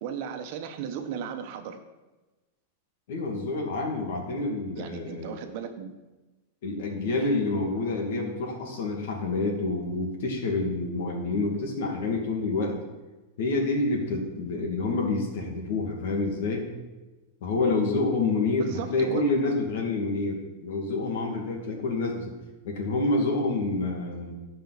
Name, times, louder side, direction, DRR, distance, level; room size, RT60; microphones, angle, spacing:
voice 1, 0.0-1.8 4.8-5.9 18.6-19.3, right 7 dB, 50° right, 6 dB, 1.1 m, -35 dB
voice 2, 3.1-5.3 6.6-12.8 13.4-16.7 17.4-22.3 22.6-24.3, left 3 dB, 70° left, 1 dB, 2.4 m, -28 dB
16.0 x 5.6 x 4.2 m, 1.1 s
supercardioid pair, 155°, 0 cm